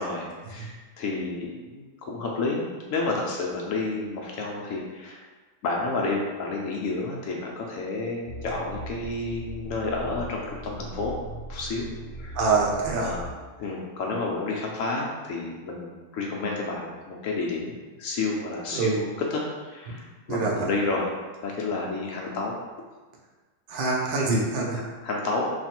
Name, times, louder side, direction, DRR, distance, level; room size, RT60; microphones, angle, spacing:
voice 1, 0.0-5.2 5.6-11.2 11.5-11.9 12.2-12.4 13.0-13.2 13.6-17.7 18.0-21.1 21.4-22.5 24.7-25.5, left 3 dB, 65° left, -2 dB, 0.8 m, -30 dB
sound 1, 8.3-13.3, equal, 80° right, 1.1 m, -39 dB
voice 2, 12.3-13.1 18.7-19.0 20.3-20.7 23.7-24.8, right 3 dB, 55° right, -2 dB, 0.6 m, -25 dB
3.2 x 2.4 x 4.3 m, 1.3 s
omnidirectional pair, 1.7 m